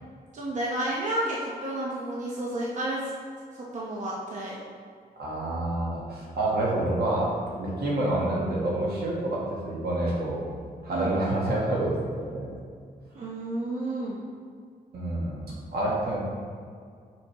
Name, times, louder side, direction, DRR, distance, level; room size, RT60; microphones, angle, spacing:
voice 1, 0.3-3.1 3.7-4.6 10.9-11.1 13.1-14.2, right 1 dB, 50° right, -5 dB, 0.8 m, -31 dB
voice 2, 5.2-10.5 10.8-12.6 14.9-16.2, right 1 dB, 80° right, -4 dB, 1.5 m, -28 dB
6.1 x 5.1 x 3.0 m, 2.1 s
wide cardioid pair, 140°, 16 cm